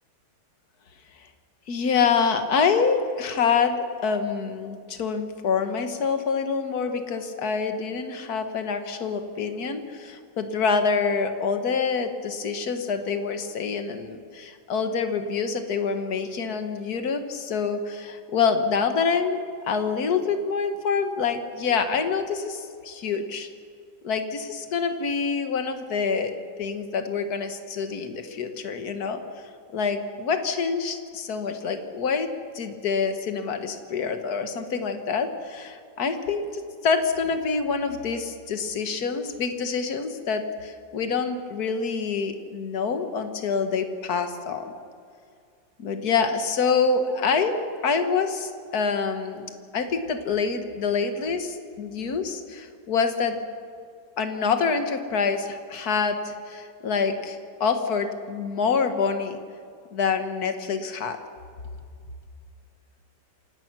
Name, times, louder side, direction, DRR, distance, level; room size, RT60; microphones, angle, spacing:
voice 1, 1.7-19.4 19.7-23.5 24.0-26.3 26.6-29.2 29.7-32.3 32.5-44.7 45.8-47.6 47.8-53.4 54.2-59.4 59.9-61.2, left 5 dB, 55° left, 7 dB, 1.9 m, -26 dB
27.0 x 17.5 x 6.2 m, 2.3 s
omnidirectional pair, 2.0 m